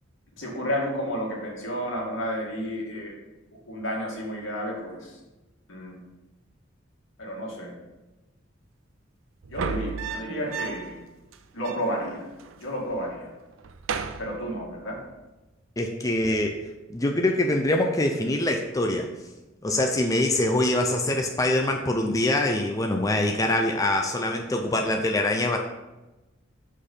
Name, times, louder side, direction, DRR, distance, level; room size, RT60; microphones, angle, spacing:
voice 1, 0.4-3.1 3.7-5.2 5.7-5.9 7.2-7.7 9.5-11.0 11.5-12.3 12.6-13.3 14.2-15.0, equal, 75° left, -3 dB, 2.2 m, -31 dB
sound 1, 9.4-11.0 11.3-11.4 11.6-12.6 12.9-13.3 13.6-15.0 16.2-16.6, right 5 dB, 80° right, 0.5 m, -35 dB
voice 2, 15.8-16.6 16.9-19.1 19.6-25.6, left 1 dB, 15° left, 3 dB, 0.5 m, -24 dB
6.6 x 5.1 x 5.6 m, 1.1 s
head